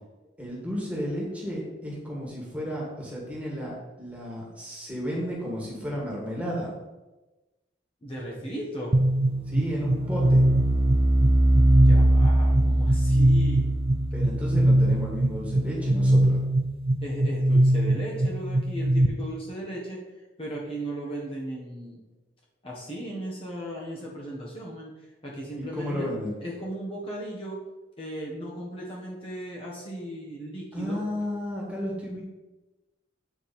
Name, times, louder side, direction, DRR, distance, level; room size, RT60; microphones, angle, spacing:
voice 1, 0.4-6.7 9.5-10.4 14.1-16.4 25.6-26.4 30.7-32.2, equal, 5° right, -4 dB, 2.0 m, -33 dB
voice 2, 8.0-8.9 11.8-13.6 17.0-20.0 20.4-22.0 22.6-24.9 25.2-26.1 26.4-27.6 28.0-31.0, right 1 dB, 30° left, -5 dB, 1.4 m, -36 dB
sound 1, 8.9-19.1, right 1 dB, 30° right, 0.4 m, -21 dB
8.4 x 5.1 x 4.3 m, 1.1 s
head